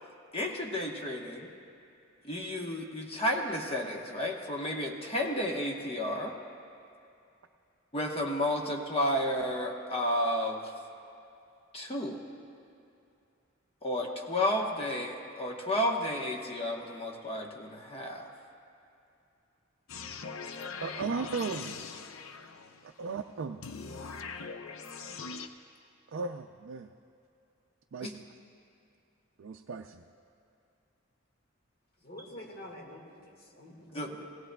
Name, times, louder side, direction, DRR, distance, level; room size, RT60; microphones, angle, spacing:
voice 1, 0.3-1.5 2.2-6.3 7.9-10.6 11.7-12.2 13.8-18.3 28.0-28.1 33.8-34.2, left 1 dB, 30° left, 1 dB, 1.1 m, -32 dB
sound 1, 19.9-22.9 23.6-25.5, left 5 dB, 85° left, 0.6 m, -41 dB
voice 2, 20.8-21.8 22.8-23.6 26.1-26.9 27.9-28.2 29.4-30.0, right 4 dB, 70° right, 4 dB, 0.4 m, -36 dB
voice 3, 32.0-34.1, left 1 dB, 50° left, -1 dB, 1.7 m, -47 dB
18.0 x 17.0 x 2.3 m, 2.6 s
head